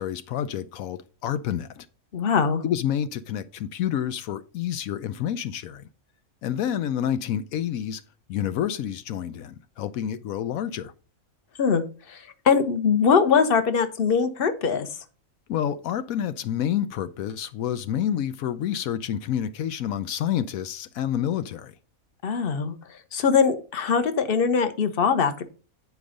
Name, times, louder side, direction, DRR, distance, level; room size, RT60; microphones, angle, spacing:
voice 1, 0.0-1.9 2.6-5.9 6.4-8.0 8.3-10.9 15.5-21.7, left 10 dB, 85° left, 1.0 m, -28 dB
voice 2, 2.1-2.6 11.6-11.8 12.1-14.9 22.2-22.7 23.1-25.4, left 6 dB, 45° left, 1.1 m, -22 dB
9.4 x 4.8 x 5.1 m
omnidirectional pair, 1.4 m